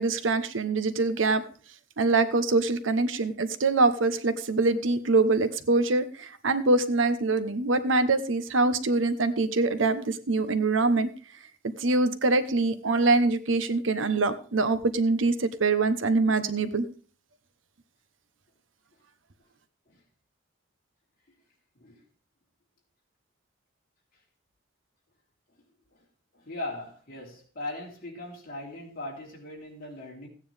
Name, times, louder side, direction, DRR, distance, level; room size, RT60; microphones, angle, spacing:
voice 1, 0.0-1.4 2.0-11.1 11.8-16.9, right 3 dB, 75° right, 11 dB, 1.0 m, -24 dB
voice 2, 26.5-30.3, left 2 dB, 50° left, -2 dB, 3.7 m, -39 dB
15.0 x 9.3 x 3.4 m, 0.39 s
head